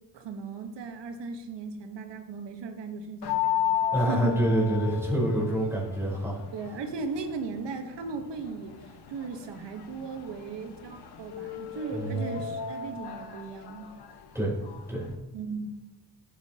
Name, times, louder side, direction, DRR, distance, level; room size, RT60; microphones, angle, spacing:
voice 1, 0.1-3.7 4.0-4.4 6.5-8.8 9.1-13.9 15.3-15.7, right 4 dB, 80° right, 6 dB, 1.4 m, -37 dB
sound 1, 3.2-15.1, left 9 dB, 65° left, 1.3 m, -35 dB
voice 2, 3.9-6.4 11.9-12.4 14.3-14.5 14.9-15.1, right 1 dB, 5° right, -5 dB, 4.0 m, -27 dB
15.0 x 8.4 x 2.9 m, 1.1 s
wide cardioid pair, 140°, 42 cm